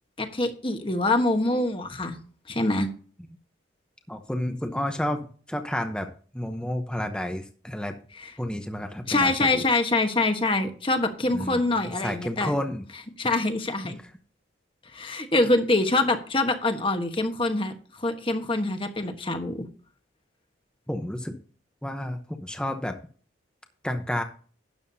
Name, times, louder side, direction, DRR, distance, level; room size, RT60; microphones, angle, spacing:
voice 1, 0.2-2.2 2.5-2.9 8.2-8.3 9.1-12.5 13.2-14.0 14.9-19.7, left 2 dB, 25° left, 6 dB, 1.3 m, -25 dB
voice 2, 4.1-5.2 5.5-7.9 8.4-9.6 11.3-12.9 13.8-13.9 20.9-21.4 21.8-23.0 23.8-24.2, left 1 dB, 5° left, 5 dB, 0.8 m, -31 dB
12.5 x 9.3 x 2.8 m, 0.42 s
head